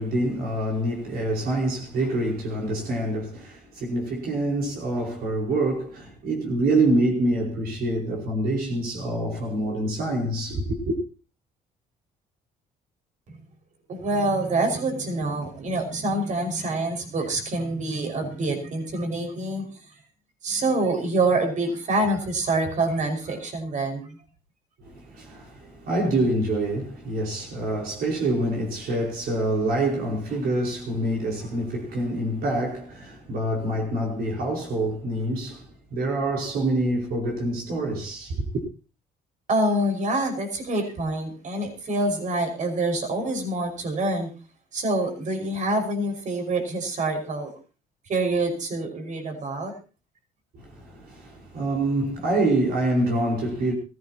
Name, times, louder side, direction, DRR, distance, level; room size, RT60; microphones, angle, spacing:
voice 1, 0.0-11.0 24.8-38.6 50.5-53.7, right 1 dB, 65° right, 5.0 m, -26 dB
voice 2, 13.9-19.7 20.4-24.2 39.5-44.3 44.7-47.5 48.1-49.7, right 2 dB, 45° right, 5.6 m, -26 dB
23.0 x 15.5 x 3.0 m
cardioid pair, 110°, 17 cm